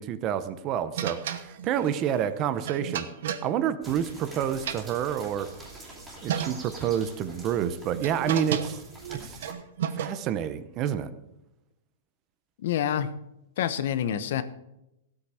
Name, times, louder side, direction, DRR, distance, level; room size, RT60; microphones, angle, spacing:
voice 1, 0.0-3.1 3.4-5.5 6.2-8.8 9.2-9.4 10.0-11.1, right 9 dB, 25° right, 13 dB, 0.7 m, -28 dB
sound 1, 1.0-4.3 4.5-5.6 6.0-6.1 6.3-6.9 7.6-10.4, right 9 dB, 60° right, 1.1 m, -33 dB
sound 2, 3.8-9.5, right 1 dB, 10° right, 2.6 m, -46 dB
voice 2, 12.6-13.1 13.6-14.4, left 10 dB, 55° left, 13 dB, 0.9 m, -27 dB
16.0 x 8.5 x 4.8 m, 0.88 s
supercardioid pair, 170°, 0 cm